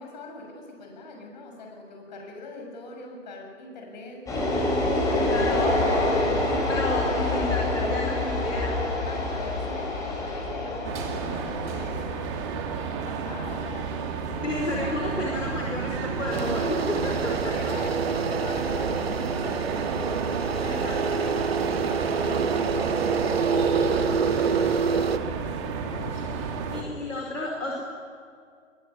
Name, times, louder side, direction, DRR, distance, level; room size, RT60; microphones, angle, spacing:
voice 1, 0.0-4.3 5.3-5.6 7.3-7.5 9.1-12.2 13.0-14.6 17.5-20.3 20.6-20.9 21.2-25.2 25.8-26.5, left 2 dB, 35° left, 3 dB, 6.9 m, -42 dB
sound 1, 4.3-17.3, left 2 dB, 10° left, 6.3 m, -28 dB
voice 2, 5.3-8.8 14.4-17.5 20.6-21.2 26.7-27.8, left 2 dB, 75° left, -1 dB, 4.9 m, -31 dB
sound 2, 10.8-26.8, right 5 dB, 20° right, 2.4 m, -31 dB
sound 3, 16.3-25.2, right 5 dB, 50° right, 1.6 m, -27 dB
23.5 x 23.5 x 9.8 m, 2.2 s
figure-of-eight pair, 135°, 39 cm